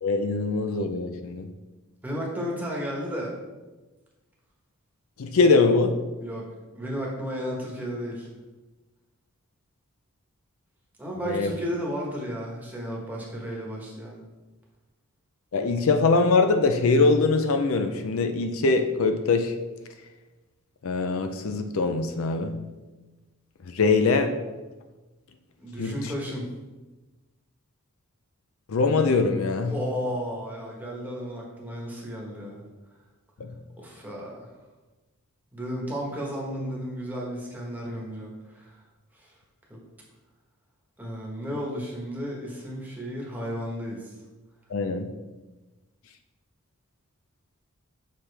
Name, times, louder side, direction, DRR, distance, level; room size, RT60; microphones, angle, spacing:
voice 1, 0.0-1.5 5.2-6.0 11.2-11.5 15.5-19.6 20.8-22.6 23.6-24.4 25.8-26.1 28.7-29.8 33.4-33.5 44.7-45.1, left 3 dB, 70° left, 7 dB, 0.5 m, -23 dB
voice 2, 2.0-3.3 6.2-6.4 6.7-8.3 11.0-14.2 25.6-26.5 29.7-32.6 33.8-34.5 35.5-38.8 39.1-39.3 39.7-39.8 41.0-44.2, equal, 10° right, -3 dB, 1.2 m, -33 dB
6.6 x 5.7 x 3.3 m, 1.2 s
head